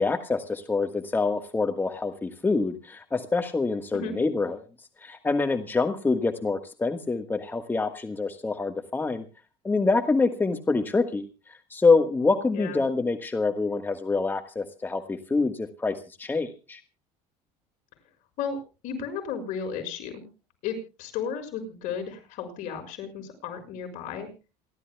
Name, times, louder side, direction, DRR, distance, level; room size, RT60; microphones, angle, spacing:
voice 1, 0.0-4.6 5.0-9.2 9.6-11.3 11.7-16.8, left 3 dB, 15° left, 7 dB, 1.5 m, -26 dB
voice 2, 18.8-20.3 20.6-24.3, left 6 dB, 70° left, 5 dB, 6.3 m, -34 dB
28.0 x 12.5 x 2.3 m, 0.32 s
cardioid pair, 120°, 14 cm